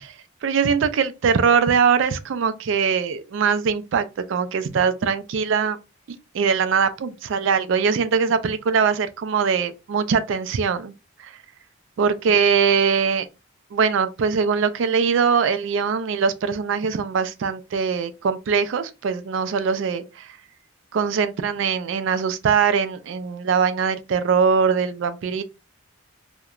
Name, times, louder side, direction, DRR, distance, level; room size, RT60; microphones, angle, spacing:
voice 1, 0.4-5.8 6.3-10.9 11.2-11.3 12.0-13.3 13.7-20.4 20.9-25.4, right 6 dB, 65° right, 0.3 m, -22 dB
2.8 x 2.1 x 2.3 m
head